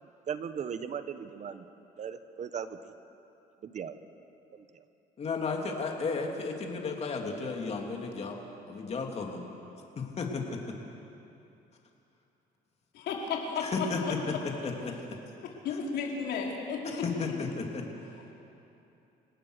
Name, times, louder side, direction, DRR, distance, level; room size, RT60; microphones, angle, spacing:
voice 1, 0.3-1.7 2.0-2.8 3.6-3.9 4.5-4.6, right 7 dB, 45° right, 11 dB, 1.1 m, -37 dB
voice 2, 5.2-8.4 8.7-9.4 10.0-10.6 13.6-14.3 14.6-14.9 16.8-17.8, left 4 dB, 40° left, 1 dB, 3.1 m, -33 dB
voice 3, 12.9-13.6 14.0-14.4 15.6-17.0, left 5 dB, 80° left, -1 dB, 4.2 m, -33 dB
28.5 x 18.0 x 6.6 m, 2.9 s
cardioid pair, 110°, 17 cm